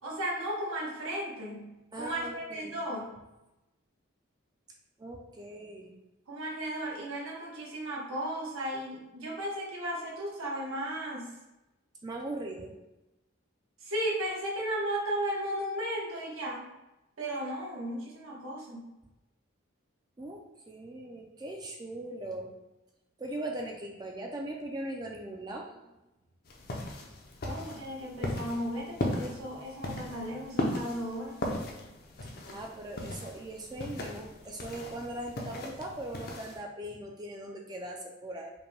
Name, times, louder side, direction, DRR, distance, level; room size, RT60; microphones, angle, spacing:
voice 1, 0.0-3.2 6.3-11.3 13.8-16.6 17.2-18.8 27.4-31.4, right 1 dB, 85° right, -3 dB, 1.1 m, -35 dB
voice 2, 1.9-2.8 5.0-6.0 12.0-12.7 20.2-22.5 23.2-26.0 32.5-38.5, right 1 dB, 20° right, 1 dB, 0.4 m, -40 dB
sound 1, 26.4-36.6, left 1 dB, 45° left, 0.6 m, -37 dB
5.1 x 2.2 x 3.2 m, 0.98 s
head